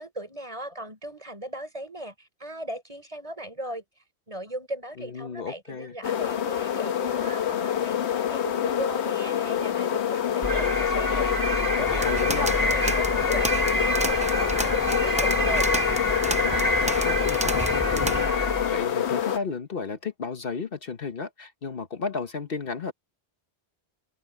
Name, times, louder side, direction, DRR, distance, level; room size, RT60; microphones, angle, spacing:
voice 1, 0.0-3.8 4.3-15.7, right 1 dB, 30° right, 5.6 m, -38 dB
voice 2, 5.0-6.0 11.6-12.5 16.4-18.4 18.7-22.9, left 5 dB, 60° left, 1.2 m, -33 dB
sound 1, 6.0-19.4, left 9 dB, 90° left, 1.2 m, -27 dB
sound 2, 10.4-19.0, equal, 20° left, 1.8 m, -27 dB
sound 3, 11.8-18.3, right 1 dB, 10° right, 0.4 m, -33 dB
open air
omnidirectional pair, 1.1 m